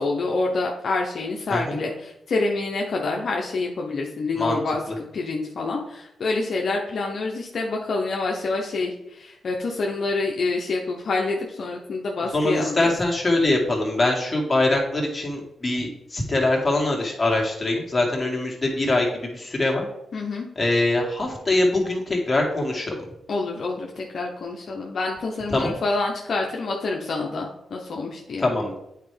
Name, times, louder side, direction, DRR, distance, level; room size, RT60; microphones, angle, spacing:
voice 1, 0.0-4.8 5.1-12.9 20.1-20.5 23.3-28.4, left 3 dB, 65° left, 0 dB, 0.9 m, -27 dB
voice 2, 12.3-19.9 20.6-23.0 25.5-25.7 28.4-28.8, left 2 dB, 25° left, -1 dB, 2.0 m, -23 dB
8.5 x 4.6 x 3.4 m, 0.84 s
cardioid pair, 65°, 0 cm